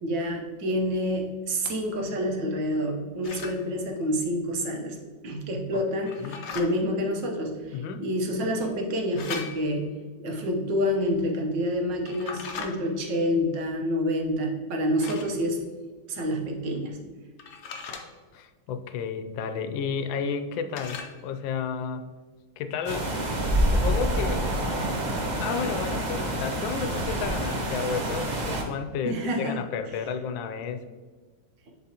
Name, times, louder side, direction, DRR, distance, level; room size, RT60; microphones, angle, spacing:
voice 1, 0.0-5.0 5.2-9.9 10.2-15.6 16.1-17.0 27.3-27.4 29.0-29.6, equal, 75° right, 2 dB, 1.7 m, -28 dB
sound 1, 3.2-3.6 6.1-6.7 9.2-9.8 12.1-12.7 15.0-15.3 17.4-18.0 20.7-21.2, left 6 dB, 60° left, 1.1 m, -38 dB
voice 2, 7.7-8.1 18.3-22.1 22.6-23.1 23.7-24.5 25.4-30.8, left 6 dB, 90° left, 8 dB, 1.3 m, -32 dB
sound 2, 22.8-28.6, right 1 dB, 50° right, 0.5 m, -27 dB
10.5 x 3.9 x 2.9 m, 1.5 s
omnidirectional pair, 2.0 m